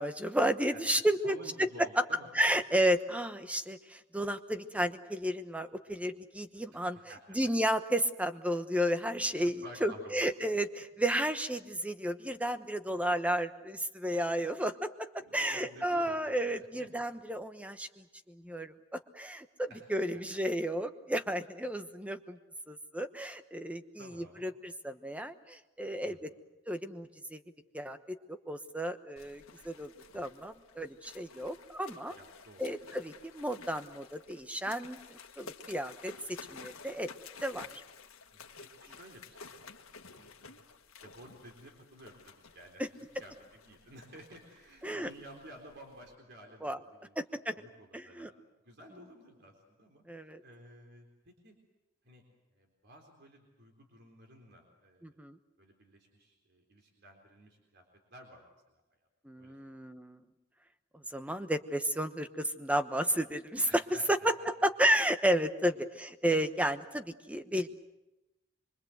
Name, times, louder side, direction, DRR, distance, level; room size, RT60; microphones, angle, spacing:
voice 1, 0.0-1.7 2.0-2.1 2.3-7.0 7.3-9.5 9.8-15.1 15.3-22.4 22.7-26.3 26.7-27.4 27.7-32.1 32.6-36.1 36.5-37.1 37.4-37.7 42.8-42.9 44.8-45.1 46.6-46.8 47.2-47.5 47.9-48.3 50.1-50.4 55.0-55.4 59.2-60.2 61.1-63.8 64.1-64.3 64.6-67.7, right 1 dB, 5° right, 9 dB, 1.0 m, -32 dB
voice 2, 0.7-2.3 6.7-7.4 9.4-10.5 15.2-16.4 16.8-16.9 19.7-20.1 23.7-24.5 26.0-26.3 32.1-32.6 38.3-39.7 40.0-40.6 41.0-42.8 43.2-47.1 47.5-51.5 52.0-52.2 52.5-55.1 55.6-57.8 58.1-58.8 59.4-59.6 63.7-64.5, right 1 dB, 55° right, 2 dB, 4.0 m, -53 dB
sound 1, 29.2-46.2, left 5 dB, 85° left, 1.7 m, -53 dB
25.0 x 23.5 x 8.0 m, 0.98 s
head